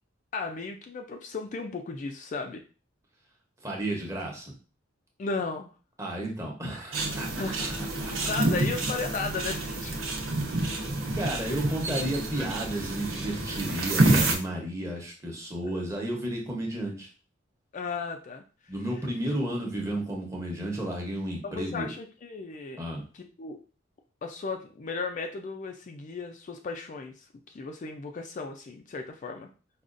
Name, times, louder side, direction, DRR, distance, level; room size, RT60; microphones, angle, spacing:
voice 1, 0.3-2.6 5.2-5.7 7.4-7.7 8.0-10.0 15.6-15.8 17.7-18.4 21.4-22.8 23.4-23.6 24.2-27.1 27.5-29.5, left 4 dB, 40° left, 4 dB, 0.3 m, -35 dB
voice 2, 3.6-4.5 6.0-7.3 7.8-8.3 10.3-10.8 11.1-17.1 18.7-21.9 22.8-23.0, right 1 dB, 15° right, -1 dB, 0.9 m, -33 dB
sound 1, 6.9-14.3, right 2 dB, 80° right, 0.9 m, -28 dB
4.9 x 2.3 x 2.5 m, 0.36 s
head